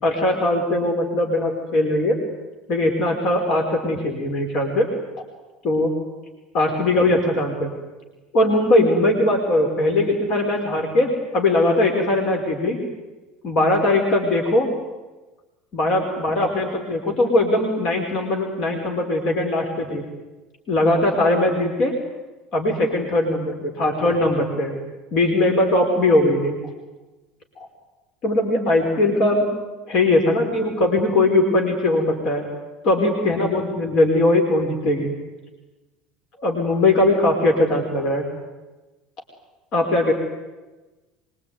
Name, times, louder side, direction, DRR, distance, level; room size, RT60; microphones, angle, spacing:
voice 1, 0.0-2.2 2.7-4.9 5.6-5.9 6.5-7.7 8.3-12.8 13.4-14.7 15.7-20.0 20.7-22.0 22.5-24.8 25.1-26.6 27.6-27.7 28.2-29.4 29.9-32.4 32.8-35.1 36.4-38.3 39.7-40.1, left 2 dB, 50° left, 2 dB, 5.1 m, -20 dB
25.0 x 23.5 x 9.6 m, 1.2 s
figure-of-eight pair, 70°, 0 cm